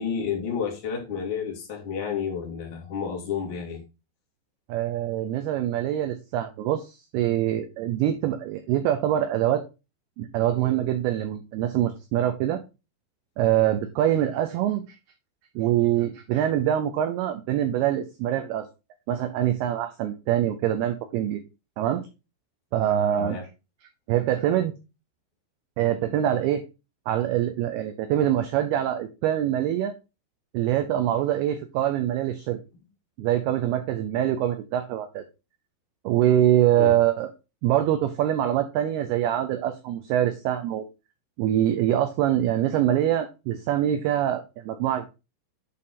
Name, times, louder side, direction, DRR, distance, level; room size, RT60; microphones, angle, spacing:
voice 1, 0.0-3.8 10.4-10.8 23.2-23.5 36.8-36.9, left 6 dB, 40° left, 1.9 m, -31 dB
voice 2, 4.7-9.6 10.2-12.6 13.4-15.0 15.6-18.7 19.1-21.4 21.8-22.0 22.7-23.4 24.1-24.7 25.8-26.6 27.1-29.9 30.5-32.6 33.2-35.2 36.1-37.3 37.6-40.8 41.4-45.1, right 11 dB, 85° right, 2.2 m, -24 dB
8.6 x 3.8 x 4.0 m
omnidirectional pair, 5.2 m